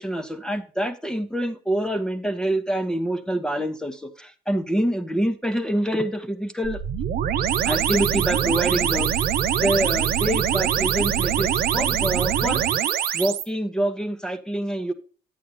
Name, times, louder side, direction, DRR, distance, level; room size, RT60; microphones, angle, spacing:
voice 1, 0.0-6.8 7.6-9.3 9.6-12.7 13.1-14.9, right 1 dB, 5° left, 0.9 m, -26 dB
sound 1, 6.6-13.4, right 9 dB, 60° right, 0.9 m, -23 dB
9.0 x 8.4 x 2.7 m
cardioid pair, 110°, 17 cm